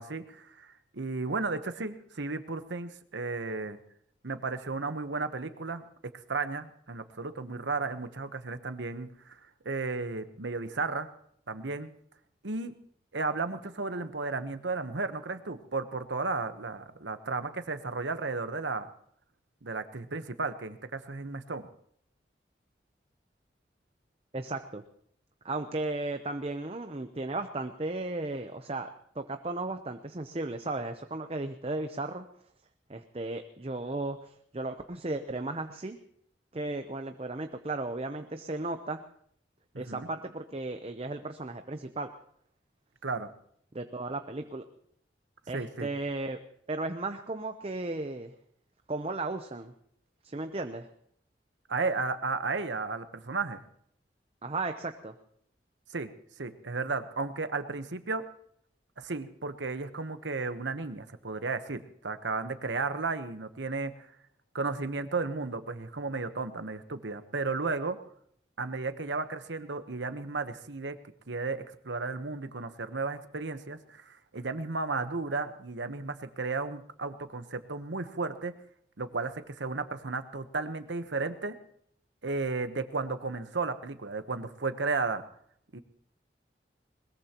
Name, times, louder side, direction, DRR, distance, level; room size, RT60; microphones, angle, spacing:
voice 1, 0.0-3.8 4.2-5.8 6.3-9.4 9.6-11.1 11.5-11.9 12.4-12.7 13.1-18.9 19.6-21.7 39.9-40.1 43.0-43.3 45.5-45.9 51.7-53.6 55.9-56.1 56.4-58.2 59.0-64.1 64.5-68.0 68.6-71.0 71.3-78.5 79.0-81.6 82.2-85.2 85.7-85.8, right 3 dB, 90° right, 10 dB, 1.1 m, -34 dB
voice 2, 24.3-24.8 25.4-28.9 29.1-32.3 32.9-36.0 36.5-39.0 39.8-42.1 43.7-44.6 45.5-46.4 46.7-48.3 48.9-49.7 50.2-50.9 54.4-55.1, right 2 dB, 35° right, 7 dB, 0.7 m, -35 dB
21.0 x 21.0 x 3.0 m, 0.66 s
head